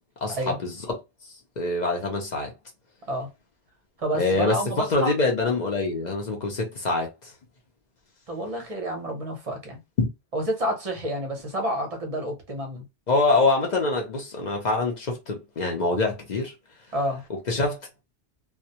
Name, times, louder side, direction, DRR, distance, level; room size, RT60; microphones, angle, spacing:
voice 1, 0.2-1.0 1.6-2.5 4.2-7.3 10.0-10.1 13.1-16.5 17.3-18.0, left 3 dB, 50° left, 0.6 m, -25 dB
voice 2, 4.0-5.1 8.3-9.8 10.3-12.8 16.9-17.2, equal, 40° right, 0.6 m, -29 dB
2.2 x 2.1 x 2.7 m
omnidirectional pair, 1.2 m